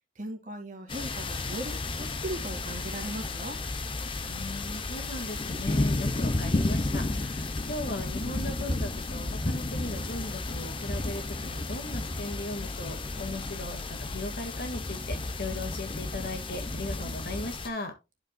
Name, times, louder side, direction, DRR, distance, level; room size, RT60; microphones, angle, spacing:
voice 1, 0.2-3.6, right 1 dB, 45° right, 1.9 m, -38 dB
sound 1, 0.9-17.7, left 2 dB, 30° left, 0.6 m, -32 dB
voice 2, 4.3-17.9, left 1 dB, 60° left, 1.7 m, -38 dB
11.5 x 5.2 x 2.2 m
head